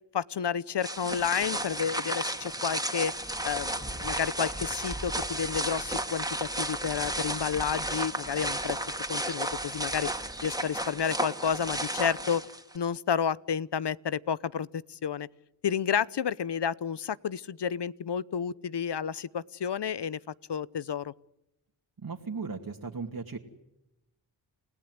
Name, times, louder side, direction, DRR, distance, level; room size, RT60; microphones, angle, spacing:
voice 1, 0.1-3.1 3.4-8.8 9.1-10.1 10.4-12.4 12.7-15.3 15.6-20.2 20.5-21.1, left 7 dB, 60° left, 1.0 m, -31 dB
sound 1, 0.8-12.8, right 1 dB, 10° right, 2.8 m, -33 dB
voice 2, 22.0-23.4, right 4 dB, 50° right, 2.5 m, -37 dB
29.5 x 16.5 x 9.6 m
cardioid pair, 45°, 47 cm